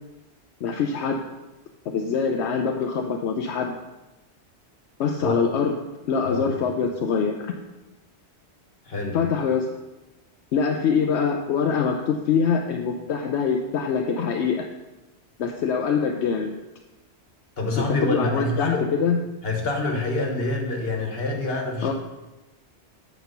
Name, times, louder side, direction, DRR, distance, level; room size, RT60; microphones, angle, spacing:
voice 1, 0.6-1.2 1.9-3.8 5.0-5.7 6.1-7.5 9.1-9.7 10.5-14.7 15.4-16.5 17.8-19.2 21.8-21.9, left 6 dB, 80° left, 3 dB, 0.9 m, -24 dB
voice 2, 8.9-9.2 17.6-18.8 19.4-21.9, left 2 dB, 60° left, 1 dB, 1.7 m, -26 dB
8.1 x 4.8 x 6.7 m, 1.1 s
omnidirectional pair, 1.1 m